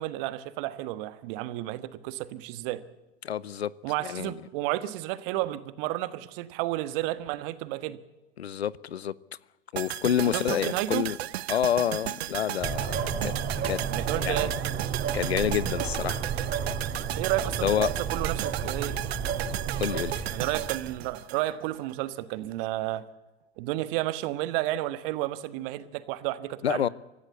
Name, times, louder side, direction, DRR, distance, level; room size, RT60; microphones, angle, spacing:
voice 1, 0.0-2.8 3.8-8.0 10.3-11.0 13.9-14.5 17.2-17.8 18.1-19.0 20.3-23.0 23.6-26.9, right 16 dB, 60° right, 1.5 m, -32 dB
voice 2, 3.2-3.7 4.0-4.4 8.4-9.1 9.7-11.2 11.5-13.3 13.6-13.8 14.2-14.5 15.1-16.3 17.6-17.9 19.8-20.3 26.6-26.9, left 9 dB, 90° left, 0.7 m, -28 dB
sound 1, 9.8-21.9 22.2-22.3, right 14 dB, 75° right, 0.7 m, -35 dB
sound 2, 12.6-21.1, right 6 dB, 30° right, 3.7 m, -32 dB
24.5 x 15.0 x 8.3 m
hypercardioid pair, 90°, 31 cm